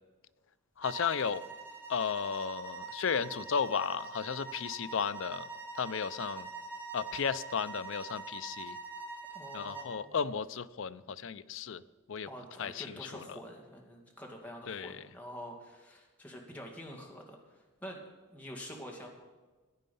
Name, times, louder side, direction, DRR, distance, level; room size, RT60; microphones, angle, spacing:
voice 1, 0.8-1.4 1.9-6.5 6.9-8.8 9.5-11.8 12.1-12.3 12.6-13.4 14.7-15.1, left 6 dB, 65° left, 15 dB, 0.5 m, -34 dB
sound 1, 0.8-10.0, right 4 dB, 10° right, 2.0 m, -44 dB
voice 2, 9.3-10.1 12.3-18.0 18.3-19.1, equal, 5° left, 0 dB, 2.1 m, -47 dB
15.5 x 10.5 x 5.4 m, 1.3 s
head